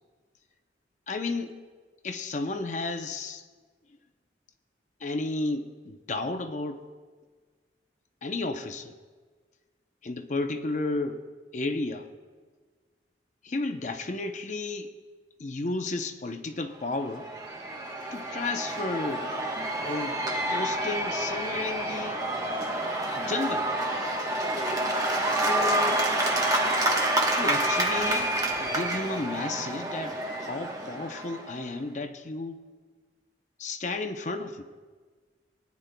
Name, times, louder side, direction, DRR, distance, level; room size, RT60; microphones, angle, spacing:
voice 1, 1.1-1.6 2.0-3.4 5.0-6.8 8.2-9.0 10.0-11.2 11.5-12.1 13.4-14.9 15.4-17.3 18.1-19.3 19.8-20.2 20.5-22.2 23.2-23.7 25.4-26.0 27.4-28.3 28.6-32.6 33.6-34.6, left 3 dB, 40° left, 7 dB, 0.7 m, -32 dB
Cheering / Applause / Crowd, 16.9-31.6, right 1 dB, 20° right, 1.1 m, -28 dB
23.5 x 9.7 x 2.2 m, 1.5 s
head